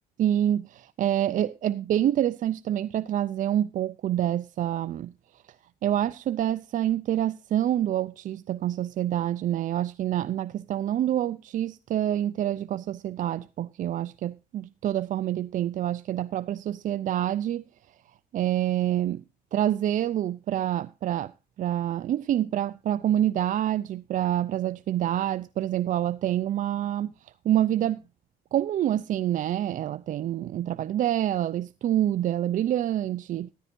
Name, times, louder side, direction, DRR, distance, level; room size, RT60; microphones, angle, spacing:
voice 1, 0.2-5.1 5.8-17.6 18.3-19.2 19.5-21.3 21.6-28.0 28.5-33.5, right 11 dB, 50° right, 0.5 m, -27 dB
14.5 x 12.5 x 2.6 m
cardioid pair, 110°, 17 cm